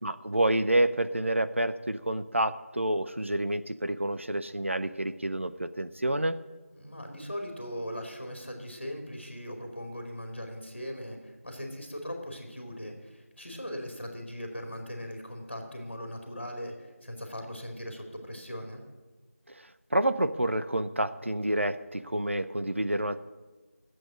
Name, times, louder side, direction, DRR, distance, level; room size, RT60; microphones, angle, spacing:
voice 1, 0.0-6.4 19.5-19.6 19.9-23.2, right 1 dB, 55° right, 11 dB, 0.7 m, -28 dB
voice 2, 6.7-18.8, equal, 45° left, 3 dB, 2.4 m, -39 dB
11.0 x 7.9 x 10.0 m, 1.3 s
figure-of-eight pair, 180°, 8 cm